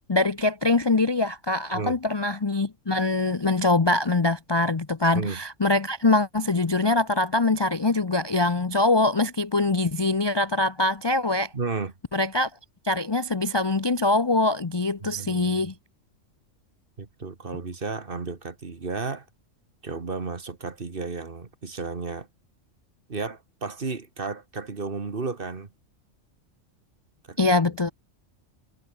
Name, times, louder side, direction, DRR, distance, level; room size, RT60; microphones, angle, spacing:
voice 1, 0.1-11.5 12.1-12.5 12.8-15.7 27.4-27.9, left 2 dB, 25° left, 0.6 m, -23 dB
voice 2, 11.5-11.9 15.0-15.7 17.0-19.3 19.8-22.3 23.1-25.7 27.3-27.9, right 4 dB, 45° right, 1.8 m, -33 dB
omnidirectional pair, 1.4 m